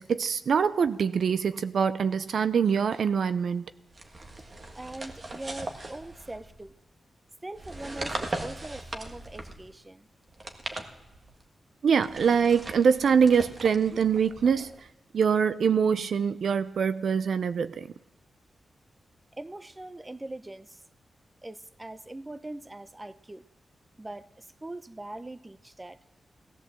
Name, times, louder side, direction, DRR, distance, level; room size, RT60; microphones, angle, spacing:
voice 1, 0.0-3.7 11.8-14.7 15.1-17.9, right 6 dB, 75° right, 0.5 m, -24 dB
sound 1, 3.9-6.7 7.5-9.7 10.3-11.4 12.0-14.8, right 2 dB, 40° right, 1.5 m, -39 dB
voice 2, 4.7-6.7 7.4-10.1 19.4-20.8 21.4-23.4 24.0-26.0, right 2 dB, 20° right, 0.7 m, -41 dB
17.0 x 11.0 x 7.4 m
cardioid pair, 70°, 0 cm